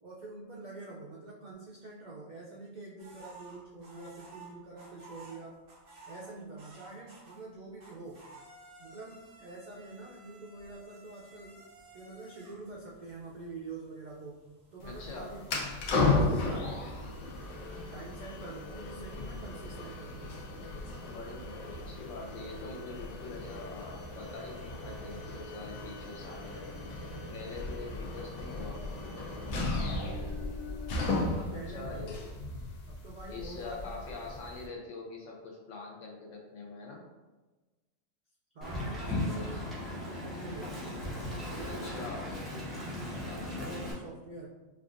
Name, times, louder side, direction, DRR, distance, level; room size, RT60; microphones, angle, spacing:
voice 1, 0.0-5.8 6.1-8.3 8.8-11.6 11.9-15.5 15.8-17.0 17.9-20.4 31.2-32.3 32.9-34.0 38.5-41.0 41.5-42.3 42.8-44.5, right 3 dB, 80° right, -4 dB, 0.4 m, -46 dB
sound 1, 3.0-7.5 7.8-15.5, right 2 dB, 50° right, 0.9 m, -55 dB
sound 2, 14.8-34.7, left 3 dB, 90° left, 1.1 m, -35 dB
voice 2, 14.8-15.3 21.0-26.7 27.3-29.3 31.5-32.2 33.3-37.0 39.0-39.6 41.6-42.3, left 3 dB, 70° left, -2 dB, 0.9 m, -44 dB
Wind, 38.6-43.9, left 1 dB, ahead, 0.7 m, -37 dB
4.4 x 2.4 x 2.4 m, 1.2 s
omnidirectional pair, 1.4 m